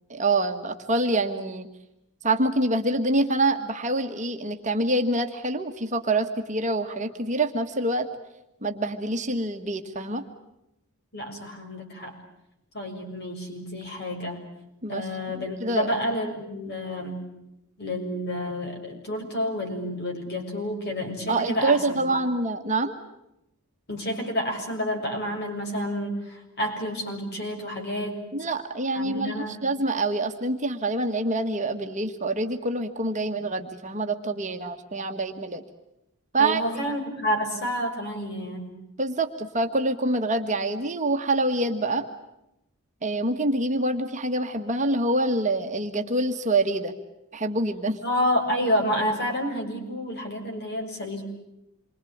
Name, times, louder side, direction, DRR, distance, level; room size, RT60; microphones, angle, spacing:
voice 1, 0.1-1.7 2.2-8.1 8.6-10.2 14.8-15.9 21.3-22.9 28.3-35.6 36.3-36.6 39.0-42.0 43.0-46.9 47.3-48.0, right 2 dB, 35° right, 5 dB, 1.6 m, -26 dB
voice 2, 11.1-12.2 12.7-14.4 14.9-17.3 17.8-22.2 23.9-28.2 28.9-29.6 36.4-38.8 48.0-51.2, equal, 45° left, 3 dB, 6.7 m, -29 dB
28.0 x 24.0 x 8.7 m, 0.85 s
head